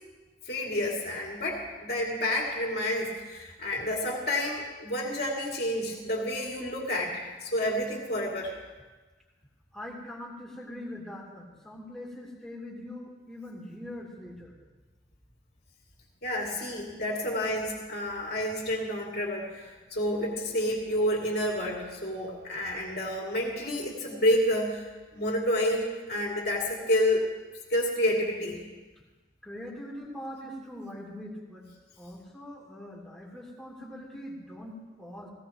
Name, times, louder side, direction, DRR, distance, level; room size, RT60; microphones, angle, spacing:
voice 1, 0.4-8.5 16.2-24.9 25.1-27.2 27.7-28.6, left 1 dB, 60° left, -3 dB, 2.6 m, -29 dB
voice 2, 9.7-14.6 29.4-31.7 32.0-35.3, left 1 dB, 5° left, -4 dB, 3.0 m, -42 dB
18.5 x 17.5 x 3.0 m, 1.3 s
head